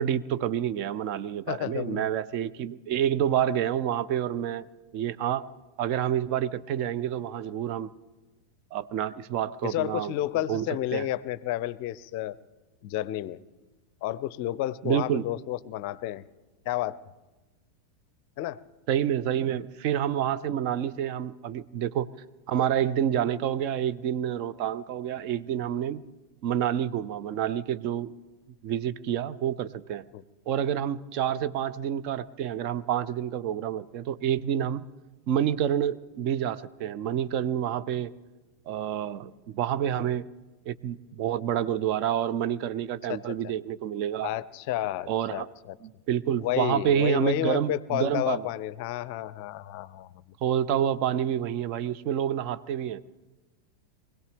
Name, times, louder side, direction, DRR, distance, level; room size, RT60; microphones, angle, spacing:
voice 1, 0.0-4.7 4.9-5.5 5.8-7.9 8.7-10.1 10.5-10.7 10.9-11.1 14.8-15.3 18.9-22.1 22.5-26.0 26.4-28.1 28.6-30.0 30.5-34.8 35.3-38.1 38.7-40.3 40.7-44.3 45.1-45.5 45.8-48.5 50.4-53.0, right 10 dB, 45° right, 15 dB, 0.5 m, -28 dB
voice 2, 1.5-2.1 9.6-12.4 12.8-13.4 14.0-16.2 16.7-17.0 18.4-18.6 30.1-30.2 43.1-43.2 44.2-45.8 46.4-50.2, left 14 dB, 45° left, 19 dB, 0.5 m, -31 dB
24.5 x 17.0 x 3.5 m, 1.2 s
figure-of-eight pair, 90°, 0 cm